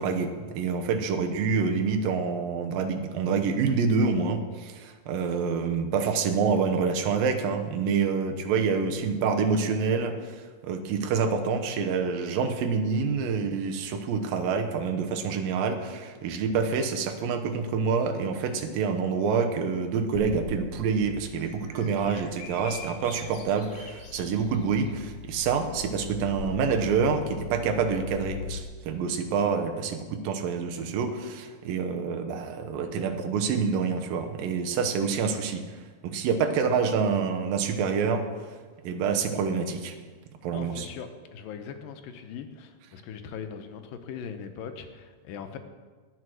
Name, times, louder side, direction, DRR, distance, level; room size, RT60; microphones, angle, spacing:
voice 1, 0.0-35.6 36.0-38.2 38.8-39.9 40.4-40.9, right 5 dB, 90° right, 5 dB, 2.8 m, -27 dB
Bird vocalization bird call bird song, 20.1-28.6, left 5 dB, 45° left, 2.2 m, -40 dB
voice 2, 40.5-45.6, left 7 dB, 85° left, 7 dB, 2.6 m, -40 dB
11.0 x 9.3 x 6.3 m, 1.5 s
omnidirectional pair, 3.9 m